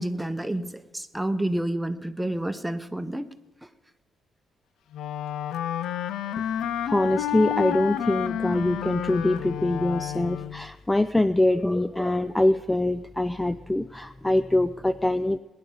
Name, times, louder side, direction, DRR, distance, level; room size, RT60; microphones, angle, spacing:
voice 1, 0.0-3.3, right 1 dB, 5° right, 10 dB, 0.9 m, -29 dB
Wind instrument woodwind instrument, 4.9-10.7, left 10 dB, 80° left, 0.5 m, -30 dB
voice 2, 6.8-15.4, left 1 dB, 10° left, 12 dB, 0.4 m, -24 dB
21.0 x 10.5 x 3.9 m, 1.1 s
cardioid pair, 90°, 0 cm